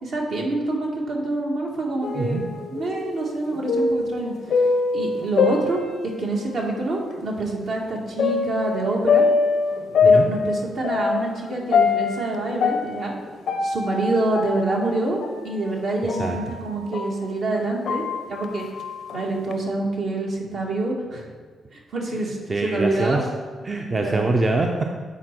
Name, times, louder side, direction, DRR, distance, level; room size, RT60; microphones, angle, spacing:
voice 1, 0.0-4.3 4.9-5.8 6.2-9.3 10.0-13.2 13.6-18.6 19.1-21.3 21.7-23.2 24.0-24.2, right 2 dB, 65° right, -1 dB, 1.5 m, -26 dB
sound 1, 2.0-6.6 7.1-7.2 8.2-17.2 17.6-19.5, left 4 dB, 75° left, 0.6 m, -24 dB
voice 2, 22.5-23.2 23.6-24.8, right 2 dB, 35° right, 2 dB, 0.6 m, -23 dB
8.2 x 4.3 x 4.4 m, 1.5 s
cardioid pair, 80°, 0 cm